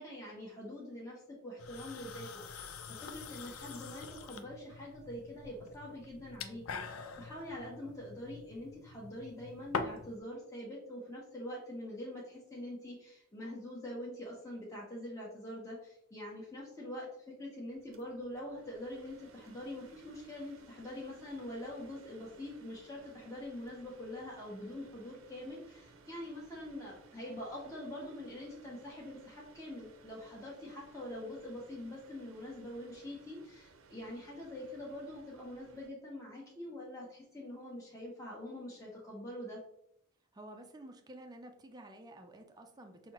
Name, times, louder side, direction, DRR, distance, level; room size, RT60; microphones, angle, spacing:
voice 1, 0.0-39.6, left 1 dB, 15° left, -5 dB, 0.9 m, -44 dB
sound 1, 1.6-10.2, left 5 dB, 90° left, 0.5 m, -44 dB
sound 2, 17.7-35.9, right 4 dB, 75° right, 0.6 m, -60 dB
voice 2, 40.3-43.1, right 1 dB, 20° right, 4 dB, 0.4 m, -51 dB
5.8 x 2.7 x 2.9 m, 0.74 s
head